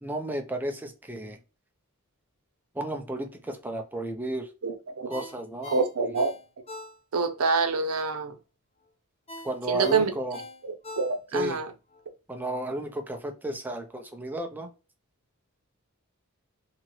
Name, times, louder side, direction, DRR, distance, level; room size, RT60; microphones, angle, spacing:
voice 1, 0.0-1.4 2.7-4.5 5.1-5.7 6.0-6.2 9.4-10.4 11.3-11.6 12.3-14.7, right 1 dB, 10° right, 0.5 m, -33 dB
voice 2, 4.6-5.1 5.7-6.3 7.1-8.3 9.7-10.1 10.6-11.7, right 4 dB, 75° right, 0.6 m, -26 dB
Ringtone, 5.1-7.4 7.7-7.8 9.3-11.5 11.9-12.0, left 2 dB, 30° left, 0.7 m, -43 dB
2.8 x 2.5 x 3.0 m
head